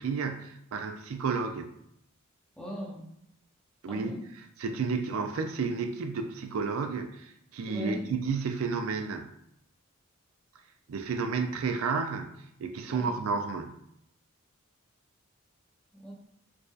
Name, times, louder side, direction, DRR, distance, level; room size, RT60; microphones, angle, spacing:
voice 1, 0.0-1.7 3.8-4.2 4.6-9.3 10.9-12.3 12.6-13.7, right 5 dB, 75° right, 6 dB, 0.4 m, -31 dB
voice 2, 2.6-3.1 3.9-4.2 7.6-8.0 12.8-13.1 15.9-16.1, left 1 dB, 5° left, -5 dB, 1.0 m, -39 dB
4.6 x 2.5 x 2.4 m, 0.74 s
head